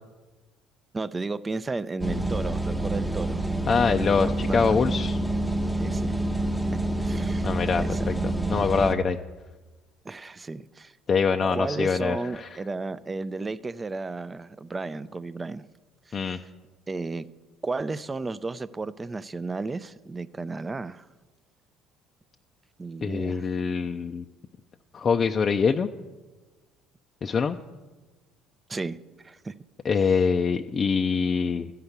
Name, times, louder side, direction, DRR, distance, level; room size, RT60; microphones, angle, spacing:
voice 1, 0.9-3.4 4.1-4.8 5.8-6.1 7.0-7.5 7.8-8.1 10.0-10.9 11.4-15.6 16.1-16.4 16.9-17.3 17.6-21.1 22.8-23.4 28.7-29.0 29.2-29.5, right 3 dB, 25° right, 0.5 m, -33 dB
sound 1, 2.0-8.9, right 1 dB, ahead, 0.8 m, -27 dB
voice 2, 3.7-5.2 7.4-9.2 11.1-12.5 16.1-16.4 23.0-24.2 24.9-25.9 27.2-27.6 29.8-31.7, left 5 dB, 40° left, 0.5 m, -24 dB
13.5 x 5.8 x 8.1 m
hypercardioid pair, 70°, 0 cm